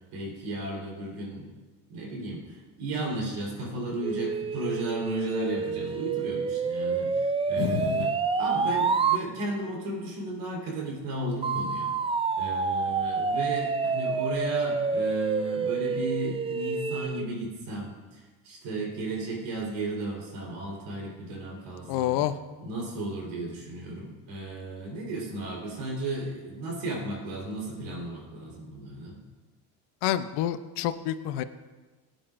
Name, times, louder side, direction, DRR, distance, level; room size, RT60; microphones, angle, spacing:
voice 1, 0.1-1.5 1.9-11.9 12.4-22.1 22.6-29.2, right 2 dB, 85° right, -2 dB, 4.0 m, -34 dB
sound 1, 4.0-9.2 11.4-17.3, right 5 dB, 15° right, 0.3 m, -28 dB
voice 2, 7.6-8.1 21.9-22.4 30.0-31.4, left 12 dB, 75° left, 11 dB, 0.7 m, -28 dB
17.5 x 9.1 x 2.5 m, 1.2 s
supercardioid pair, 90°, 42 cm